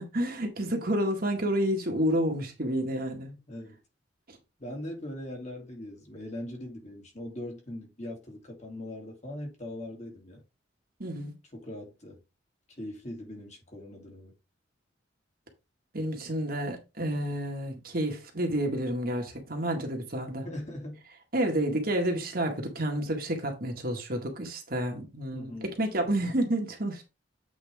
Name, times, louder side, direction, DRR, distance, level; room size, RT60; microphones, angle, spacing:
voice 1, 0.0-3.3 4.3-4.4 11.0-11.3 15.9-20.5 21.3-27.0, right 1 dB, 50° right, 1.8 m, -30 dB
voice 2, 3.5-3.8 4.6-10.4 11.5-12.2 12.7-14.3 20.4-21.0 25.3-25.7, left 1 dB, 40° left, 2.7 m, -40 dB
8.2 x 4.7 x 3.6 m
head